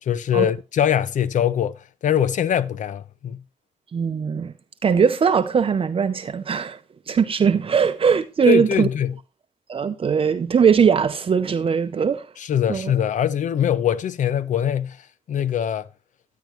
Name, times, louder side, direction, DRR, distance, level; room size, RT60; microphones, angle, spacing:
voice 1, 0.0-3.4 8.5-9.2 12.4-15.9, left 9 dB, 70° left, 0.6 m, -23 dB
voice 2, 3.9-4.5 4.8-6.8 7.1-8.9 9.7-12.3 12.7-12.9, right 6 dB, 45° right, 0.6 m, -20 dB
10.5 x 9.4 x 3.0 m
cardioid pair, 105°, 13 cm